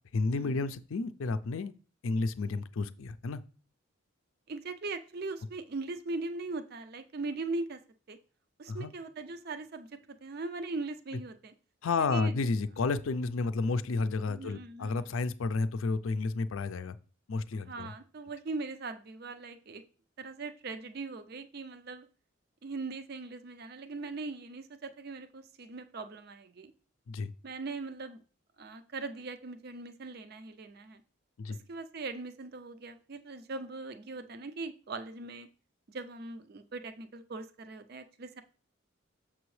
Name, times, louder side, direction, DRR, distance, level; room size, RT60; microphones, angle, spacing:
voice 1, 0.1-1.7 2.0-3.4 8.7-8.9 11.8-17.0 17.3-17.9 27.1-27.3 31.4-31.6, left 3 dB, 70° left, 13 dB, 0.4 m, -31 dB
voice 2, 4.5-7.8 8.1-8.2 8.6-11.5 12.1-12.3 14.3-15.0 17.7-19.8 20.2-22.1 22.6-26.7 27.4-28.2 28.6-31.0 31.5-35.5 35.9-38.4, right 3 dB, 50° right, 9 dB, 0.5 m, -40 dB
6.9 x 6.0 x 3.2 m, 0.38 s
head